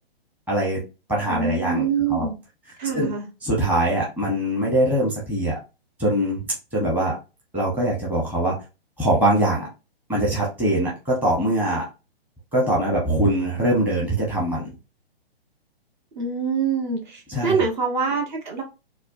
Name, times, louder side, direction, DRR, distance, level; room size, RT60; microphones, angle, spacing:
voice 1, 0.5-0.8 1.1-2.3 2.9-3.1 3.4-5.6 6.0-6.5 6.7-7.2 7.5-8.6 9.0-9.7 10.1-11.9 12.5-14.7 17.3-17.6, right 1 dB, 5° right, 1.0 m, -22 dB
voice 2, 1.3-2.4 2.8-3.3 16.1-18.6, right 5 dB, 50° right, 1.4 m, -25 dB
4.2 x 2.3 x 2.7 m
hypercardioid pair, 140°, 31 cm